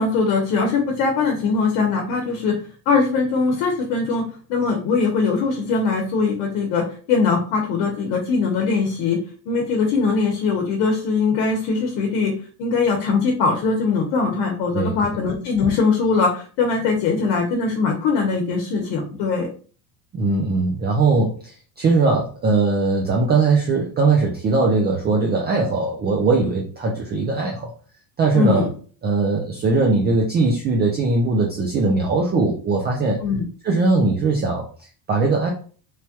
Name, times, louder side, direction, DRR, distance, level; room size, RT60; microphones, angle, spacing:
voice 1, 0.0-2.6 2.9-9.2 9.5-19.5 28.3-28.7 33.2-33.4, left 4 dB, 70° left, 1 dB, 0.9 m, -21 dB
voice 2, 20.1-27.7 28.2-28.7 29.0-33.2 33.6-35.5, right 3 dB, 25° right, -1 dB, 0.3 m, -20 dB
3.2 x 2.2 x 2.8 m, 0.41 s
cardioid pair, 140°, 45 cm